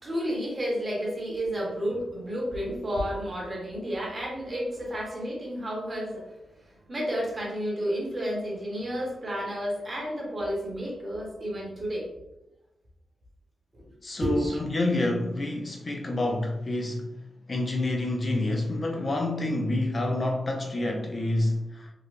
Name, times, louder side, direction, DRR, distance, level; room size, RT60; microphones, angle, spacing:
voice 1, 0.0-12.1 13.7-13.8 14.2-14.6, equal, 30° right, 1.2 m, -31 dB
voice 2, 14.0-17.1 17.5-21.9, left 2 dB, 30° left, 0.4 m, -28 dB
3.8 x 2.1 x 3.2 m
wide cardioid pair, 130°, 0 cm